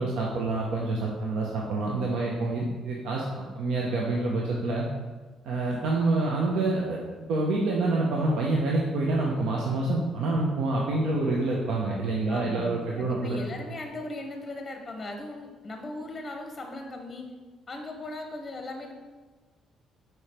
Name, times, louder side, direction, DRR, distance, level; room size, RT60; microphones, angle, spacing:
voice 1, 0.0-4.9 5.4-7.0 7.3-13.4, right 2 dB, 80° right, -2 dB, 0.8 m, -27 dB
voice 2, 12.3-17.3 17.7-18.9, left 2 dB, 20° left, 3 dB, 0.8 m, -38 dB
5.0 x 4.6 x 4.3 m, 1.3 s
cardioid pair, 125°, 0 cm